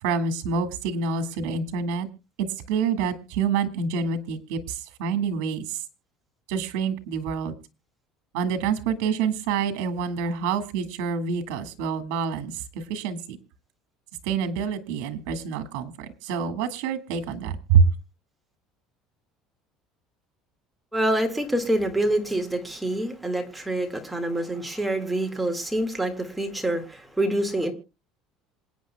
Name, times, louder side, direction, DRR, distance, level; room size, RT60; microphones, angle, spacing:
voice 1, 0.0-2.1 2.4-5.8 6.5-7.6 8.3-13.4 14.2-18.0, right 6 dB, 85° right, 9 dB, 1.7 m, -27 dB
voice 2, 20.9-27.7, right 1 dB, 5° right, 3 dB, 1.8 m, -26 dB
27.0 x 9.1 x 2.2 m, 0.27 s
cardioid pair, 160°, 0 cm